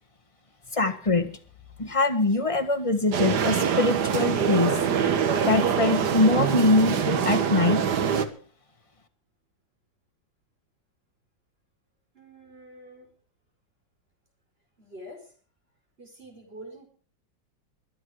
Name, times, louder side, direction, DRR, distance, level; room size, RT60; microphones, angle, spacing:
voice 1, 0.7-1.3 1.8-4.7 5.5-7.8, left 2 dB, 20° left, 7 dB, 1.3 m, -23 dB
sound 1, 3.1-8.3, right 7 dB, 60° right, 1.7 m, -24 dB
voice 2, 12.1-13.1 14.8-15.3 16.0-16.9, right 1 dB, 30° right, 2 dB, 5.0 m, -46 dB
23.0 x 8.0 x 4.9 m, 0.41 s
omnidirectional pair, 2.1 m